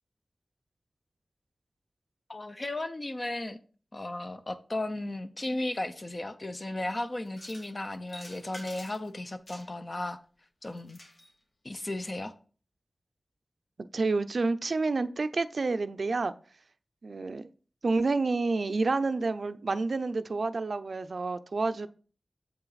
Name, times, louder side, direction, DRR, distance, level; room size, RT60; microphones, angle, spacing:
voice 1, 2.3-3.6 3.9-10.2 10.6-11.0 11.6-12.3, left 2 dB, 40° left, 0.6 m, -35 dB
sound 1, 7.3-7.7 8.1-9.1 9.5-9.9 10.6-11.3, left 1 dB, 80° left, 2.2 m, -48 dB
voice 2, 13.8-16.3 17.0-17.5 17.8-21.9, right 3 dB, 75° right, 0.4 m, -29 dB
7.5 x 5.7 x 4.0 m
wide cardioid pair, 65°, 0 cm